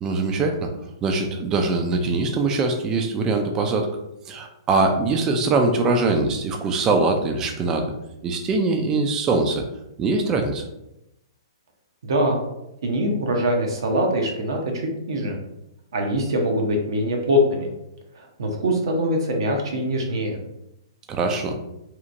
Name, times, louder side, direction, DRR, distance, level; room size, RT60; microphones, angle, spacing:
voice 1, 0.0-0.7 1.0-3.9 4.3-7.9 8.2-9.6 10.0-10.6 21.1-21.5, right 3 dB, 20° right, 4 dB, 0.3 m, -22 dB
voice 2, 12.0-12.4 12.8-15.4 15.9-17.7 18.1-20.4, equal, 70° right, 2 dB, 0.6 m, -23 dB
2.8 x 2.1 x 2.5 m, 0.86 s
hypercardioid pair, 125°, 3 cm